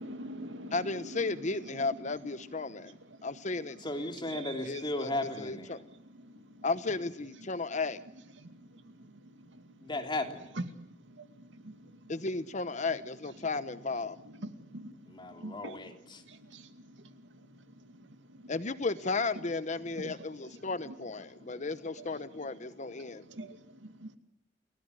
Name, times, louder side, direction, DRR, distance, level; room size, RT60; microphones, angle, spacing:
voice 1, 0.0-1.4 1.7-1.9 2.6-2.7 3.1-3.3 4.3-4.5 5.8-5.9 6.1-6.7 8.4-9.9 11.1-12.1 14.2-15.9 16.3-18.5 20.0-20.2 20.9-21.0 21.5-21.6 22.0-22.1 22.4-22.5 23.3-24.2, right 1 dB, 75° right, 2.5 m, -47 dB
voice 2, 0.7-2.9 3.2-3.8 4.7-5.8 6.6-8.0 12.1-14.2 18.5-23.2, left 3 dB, 40° left, 0.9 m, -34 dB
voice 3, 3.8-5.8 9.8-10.5 15.1-16.2, left 2 dB, 25° left, 3.3 m, -36 dB
30.0 x 17.5 x 9.9 m
head